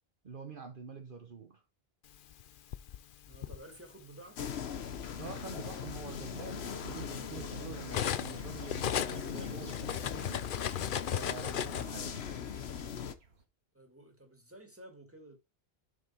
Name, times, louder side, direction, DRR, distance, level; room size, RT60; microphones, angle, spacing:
voice 1, 0.2-1.6 5.2-10.5 11.1-12.3, right 5 dB, 55° right, 1.2 m, -46 dB
Cutlery silverware, 2.3-3.6 4.6-4.7 5.2-8.4 8.7-11.8, left 9 dB, 60° left, 0.7 m, -36 dB
voice 2, 3.3-4.6 13.7-15.4, right 1 dB, 15° right, 2.2 m, -53 dB
sound 1, 4.4-13.1, left 7 dB, 85° left, 1.2 m, -40 dB
sound 2, 7.4-13.5, right 3 dB, 80° right, 2.1 m, -61 dB
7.5 x 5.7 x 4.4 m
omnidirectional pair, 1.0 m